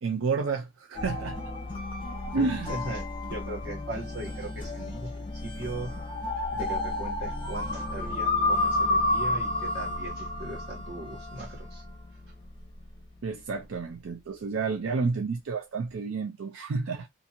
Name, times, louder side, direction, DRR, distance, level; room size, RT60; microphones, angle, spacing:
voice 1, 0.0-1.4 2.3-2.7 13.2-17.1, right 4 dB, 85° right, 0.4 m, -30 dB
sound 1, 0.9-12.0, left 2 dB, 25° left, 0.7 m, -31 dB
voice 2, 2.7-5.9 6.5-11.8, right 2 dB, 50° right, 1.4 m, -39 dB
2.6 x 2.6 x 2.7 m
head